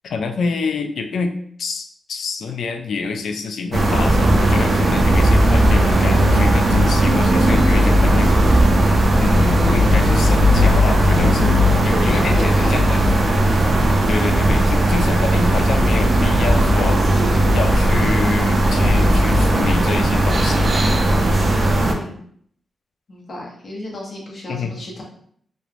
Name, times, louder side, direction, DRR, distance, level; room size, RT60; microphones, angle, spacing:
voice 1, 0.0-8.6 9.2-11.5 11.8-13.5 14.1-17.0 17.5-20.7 24.5-24.8, left 4 dB, 80° left, 5 dB, 0.3 m, -26 dB
sound 1, 3.7-21.9, right 1 dB, 40° right, 0.4 m, -16 dB
voice 2, 11.9-12.8 21.7-22.2 23.1-25.0, left 1 dB, 45° left, -2 dB, 0.7 m, -31 dB
3.1 x 2.0 x 2.4 m, 0.63 s
wide cardioid pair, 160°, 0 cm